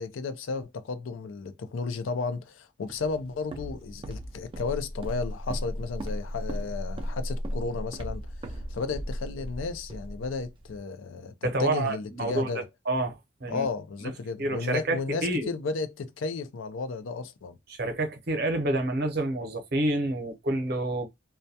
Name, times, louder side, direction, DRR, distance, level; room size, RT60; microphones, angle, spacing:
voice 1, 0.0-12.7 13.5-17.6, left 4 dB, 85° left, 0.4 m, -33 dB
Walk footsteps, 2.9-10.8, equal, 25° right, 0.3 m, -36 dB
voice 2, 11.4-12.5 12.9-13.6 14.0-14.1 14.4-15.5 17.8-21.1, right 2 dB, 55° right, 0.7 m, -28 dB
2.2 x 2.2 x 2.7 m
head